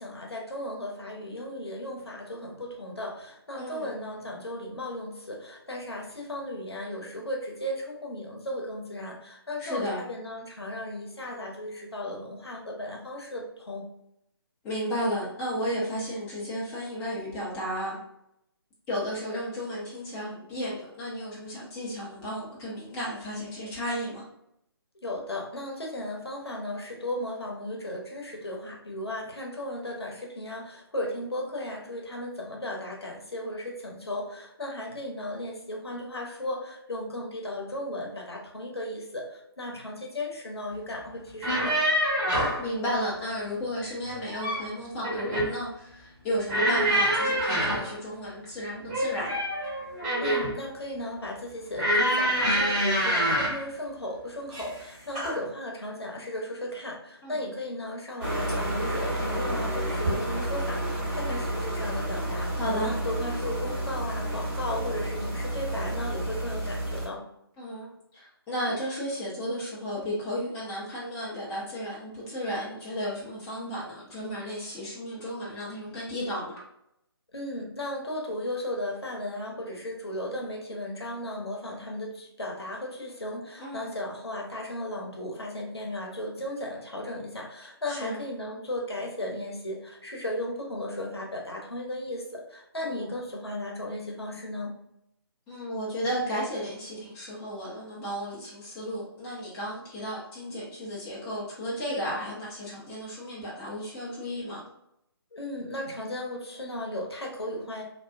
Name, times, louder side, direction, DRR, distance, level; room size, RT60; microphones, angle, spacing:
voice 1, 0.0-13.8 25.0-41.8 50.2-62.5 62.8-67.2 77.3-94.7 105.3-107.8, left 1 dB, 75° left, -1 dB, 0.8 m, -35 dB
voice 2, 3.6-3.9 9.6-10.0 14.6-18.0 18.9-24.2 42.6-49.4 57.2-57.4 62.6-62.9 67.6-67.9 68.1-76.6 83.6-84.0 87.9-88.2 92.8-93.2 95.5-104.6, equal, 10° left, -8 dB, 0.5 m, -33 dB
sound 1, 41.3-42.6 44.1-44.7 45.0-45.6 46.5-47.9 48.9-50.6 51.8-53.6 54.5-54.8 55.1-55.4, equal, 20° right, 0.9 m, -26 dB
sound 2, 58.2-67.1, right 1 dB, 55° right, 1.2 m, -30 dB
2.6 x 2.2 x 2.3 m, 0.79 s
figure-of-eight pair, 145°, 13 cm